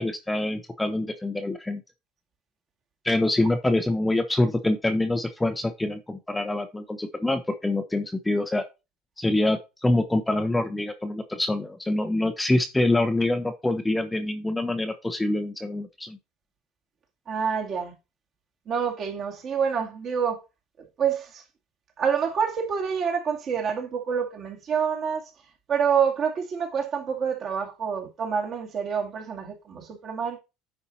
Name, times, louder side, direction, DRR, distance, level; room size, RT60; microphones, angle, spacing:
voice 1, 0.0-1.8 3.0-8.6 9.2-16.2, left 2 dB, 5° left, 0.7 m, -25 dB
voice 2, 17.3-17.9 18.7-20.4 21.0-21.4 22.0-25.3 25.7-30.4, right 7 dB, 40° right, 2.2 m, -27 dB
9.8 x 4.4 x 4.1 m
supercardioid pair, 130°, 0 cm